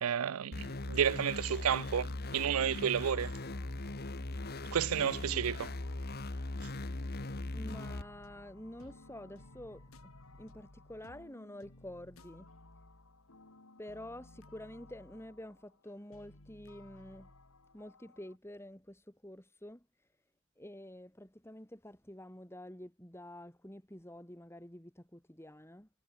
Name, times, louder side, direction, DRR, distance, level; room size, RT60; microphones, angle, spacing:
voice 1, 0.0-3.3 4.7-5.7, right 8 dB, 75° right, 0.5 m, -31 dB
sound 1, 0.5-8.0, left 2 dB, 45° left, 1.4 m, -39 dB
sound 2, 0.9-18.4, left 2 dB, 75° left, 2.6 m, -56 dB
voice 2, 7.5-12.5 13.8-17.3 17.7-25.9, left 1 dB, 10° left, 3.6 m, -49 dB
head